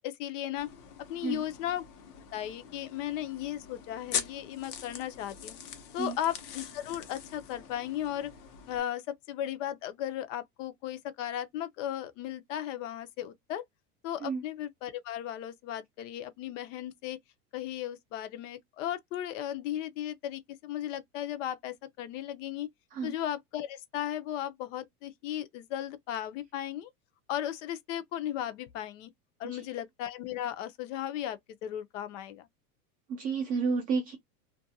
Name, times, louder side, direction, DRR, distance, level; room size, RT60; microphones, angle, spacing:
voice 1, 0.0-0.7 1.1-1.8 2.3-5.5 5.9-8.3 8.7-13.6 14.0-17.2 17.5-22.7 23.0-26.9 27.3-29.1 29.4-32.5, left 11 dB, 55° left, 0.6 m, -36 dB
sound 1, 0.6-8.8, left 8 dB, 85° left, 1.0 m, -42 dB
voice 2, 33.1-34.2, right 5 dB, 20° right, 0.4 m, -31 dB
2.5 x 2.2 x 2.6 m
supercardioid pair, 145°, 46 cm